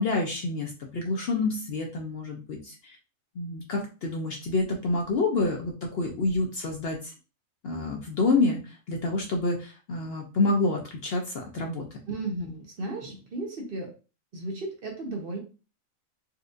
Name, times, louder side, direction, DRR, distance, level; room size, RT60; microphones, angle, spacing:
voice 1, 0.0-3.0 3.4-7.1 7.6-11.8, left 3 dB, 60° left, 1 dB, 0.7 m, -28 dB
voice 2, 12.1-13.9 14.3-15.4, right 2 dB, 50° right, 1 dB, 0.8 m, -34 dB
4.2 x 2.4 x 2.5 m, 0.33 s
omnidirectional pair, 1.4 m